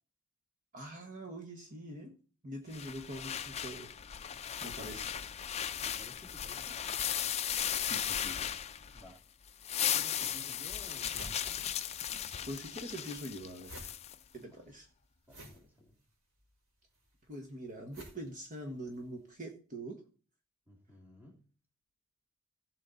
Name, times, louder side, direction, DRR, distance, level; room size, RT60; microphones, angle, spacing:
voice 1, 0.7-2.1 2.4-3.9 4.6-5.1 7.8-8.5 8.9-9.0 12.5-13.9 14.3-14.9 17.3-20.0, right 1 dB, 35° right, 3 dB, 1.4 m, -44 dB
sound 1, 2.7-9.1 9.5-14.1, left 10 dB, 30° left, 0.4 m, -36 dB
voice 2, 4.8-5.1 5.8-6.8 8.9-9.2 9.9-11.5 15.3-16.0 20.7-21.5, equal, 10° right, 1 dB, 2.6 m, -55 dB
sound 2, 11.0-12.3 12.6-19.1, equal, 80° right, 5.2 m, -53 dB
16.5 x 6.4 x 4.0 m, 0.40 s
head